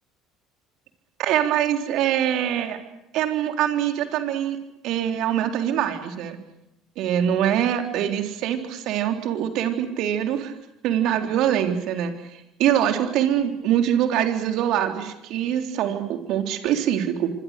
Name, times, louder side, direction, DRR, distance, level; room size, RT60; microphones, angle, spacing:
voice 1, 1.2-2.8 3.1-4.6 4.8-6.4 7.0-10.5 10.8-17.3, right 10 dB, 60° right, 6 dB, 3.8 m, -24 dB
28.0 x 25.5 x 6.8 m, 0.84 s
hypercardioid pair, 65°, 0 cm